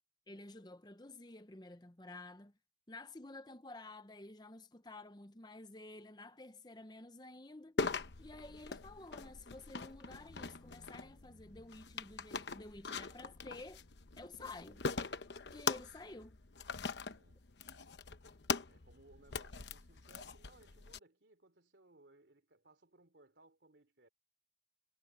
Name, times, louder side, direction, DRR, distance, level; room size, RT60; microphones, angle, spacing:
voice 1, 0.3-2.5 2.9-7.8 8.2-13.8 14.2-14.9 15.5-16.4, left 2 dB, 25° left, 0.9 m, -52 dB
sound 1, 7.8-21.0, left 4 dB, 80° left, 1.0 m, -42 dB
voice 2, 17.0-17.5 18.6-24.1, right 2 dB, 85° right, 3.2 m, -65 dB
head